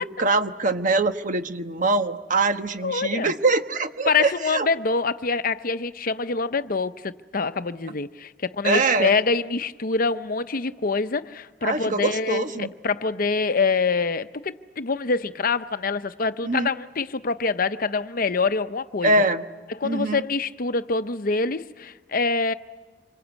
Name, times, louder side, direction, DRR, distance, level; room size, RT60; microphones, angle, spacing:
voice 1, 0.0-4.7 8.6-9.1 11.6-12.7 16.4-16.7 19.0-19.5 19.8-20.2, right 3 dB, 45° right, 1.2 m, -23 dB
voice 2, 2.8-3.3 4.1-19.1 19.8-22.5, left 4 dB, 55° left, 0.8 m, -25 dB
27.0 x 25.0 x 8.2 m
head